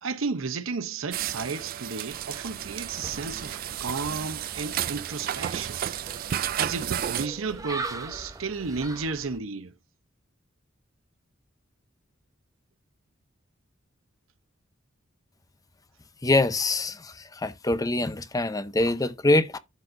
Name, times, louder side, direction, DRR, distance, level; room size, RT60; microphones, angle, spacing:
voice 1, 0.0-5.8 6.6-9.7, right 4 dB, 85° right, 0.7 m, -33 dB
sound 1, 1.1-7.3, right 10 dB, 45° right, 0.3 m, -32 dB
sound 2, 2.1-9.4, right 3 dB, 15° right, 0.8 m, -41 dB
voice 2, 16.2-19.6, left 2 dB, 20° left, 0.6 m, -24 dB
12.0 x 4.1 x 2.6 m
head